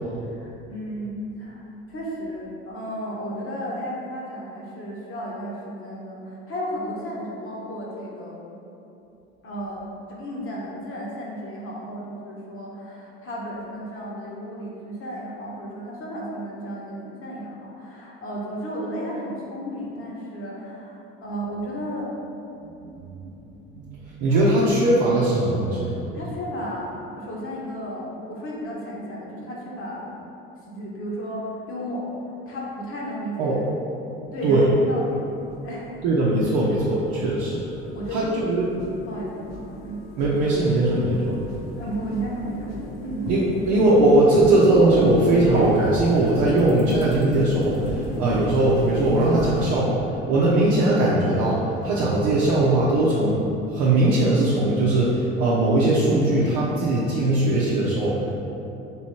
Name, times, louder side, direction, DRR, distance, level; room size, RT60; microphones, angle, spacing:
voice 1, 0.3-8.5 9.4-22.1 24.3-24.7 25.8-30.1 30.7-32.0 32.5-33.6 34.3-35.2 35.5-35.9 37.9-38.6 39.0-40.0 41.8-42.7 43.0-43.2, equal, 45° left, -4 dB, 1.2 m, -34 dB
voice 2, 22.8-23.3 23.7-26.1 33.4-33.6 34.2-34.7 36.0-37.6 38.1-38.7 40.2-41.4 43.3-50.0 50.3-53.4 53.7-58.4, right 2 dB, 70° right, -6 dB, 0.7 m, -20 dB
sound 1, 35.3-49.6, left 1 dB, 60° left, 0.7 m, -34 dB
sound 2, 44.3-46.2, right 1 dB, 25° right, 0.8 m, -26 dB
3.4 x 3.0 x 4.3 m, 2.9 s
hypercardioid pair, 60°, 31 cm